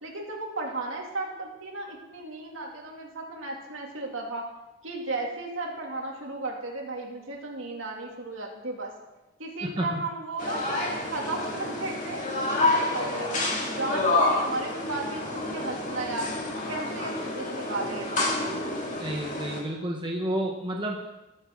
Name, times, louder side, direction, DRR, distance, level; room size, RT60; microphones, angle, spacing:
voice 1, 0.0-4.5 4.8-8.9 9.4-12.2 12.5-13.4 13.7-16.3 16.7-18.5, right 2 dB, 80° right, 0 dB, 2.4 m, -35 dB
voice 2, 9.6-10.0 19.0-21.1, right 1 dB, 25° right, 0 dB, 1.1 m, -30 dB
sound 1, 10.4-19.6, left 2 dB, 40° left, 2.1 m, -28 dB
19.0 x 7.4 x 3.7 m, 1.0 s
head